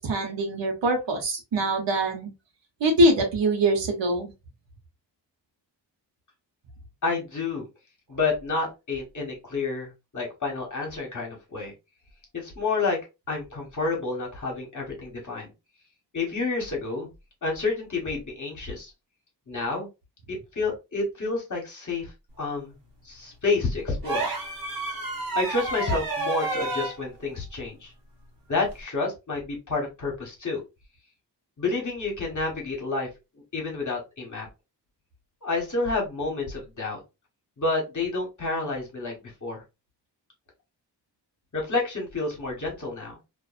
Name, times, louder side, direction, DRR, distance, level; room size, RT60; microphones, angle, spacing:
voice 1, 0.0-2.3 2.8-4.3, right 1 dB, 85° right, 3 dB, 1.0 m, -23 dB
voice 2, 7.0-7.6 8.1-11.7 12.3-13.0 13.3-15.5 16.1-17.1 17.4-18.9 19.5-19.9 20.3-22.1 22.4-22.7 23.0-24.3 25.3-27.9 28.5-30.6 31.6-33.1 33.5-34.5 35.4-37.0 37.6-39.6 41.5-43.2, left 3 dB, 45° left, 0 dB, 1.2 m, -29 dB
sound 1, 24.0-27.0 28.7-28.8, right 3 dB, 55° right, 1.1 m, -30 dB
2.5 x 2.4 x 2.4 m, 0.25 s
wide cardioid pair, 75°, 43 cm